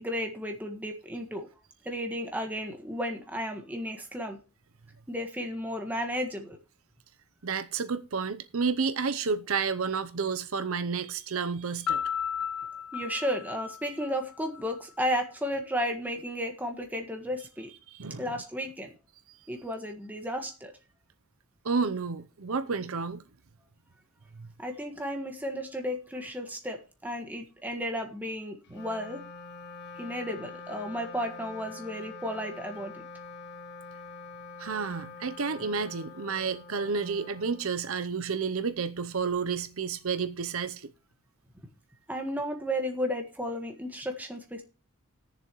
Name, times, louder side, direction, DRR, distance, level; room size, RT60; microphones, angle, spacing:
voice 1, 0.0-1.5 1.8-4.4 5.1-6.6 12.9-17.7 18.2-18.9 19.5-20.7 24.6-29.2 30.0-33.0 42.1-44.6, equal, 10° right, 1.5 m, -33 dB
voice 2, 7.4-12.0 17.9-18.3 21.6-23.2 24.3-24.5 34.6-40.9, right 5 dB, 70° right, 0.7 m, -31 dB
Piano, 11.9-14.7, left 8 dB, 70° left, 0.5 m, -34 dB
Wind instrument woodwind instrument, 28.6-38.2, left 4 dB, 50° left, 1.1 m, -45 dB
18.0 x 7.2 x 3.1 m
head